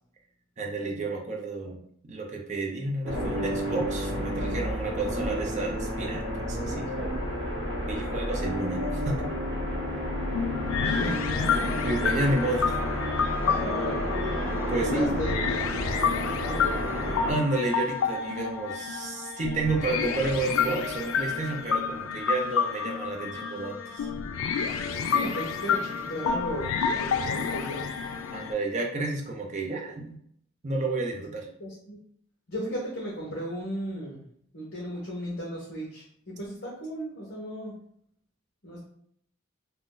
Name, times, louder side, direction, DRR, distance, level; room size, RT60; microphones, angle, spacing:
voice 1, 0.6-1.8 2.1-6.9 7.8-9.2 11.8-12.7 14.7-15.2 17.3-24.1 28.3-30.2 30.6-31.5, right 2 dB, 35° right, 0 dB, 0.5 m, -31 dB
sound 1, 3.0-17.3, equal, 60° right, 0.8 m, -31 dB
sound 2, 10.3-28.5, left 6 dB, 90° left, 0.3 m, -29 dB
voice 2, 10.8-11.2 13.4-14.2 14.8-15.3 16.4-16.8 25.0-27.9 31.6-32.0 32.5-34.2 34.5-37.8 38.6-38.8, equal, 55° left, -5 dB, 0.8 m, -35 dB
2.5 x 2.1 x 3.7 m, 0.67 s
head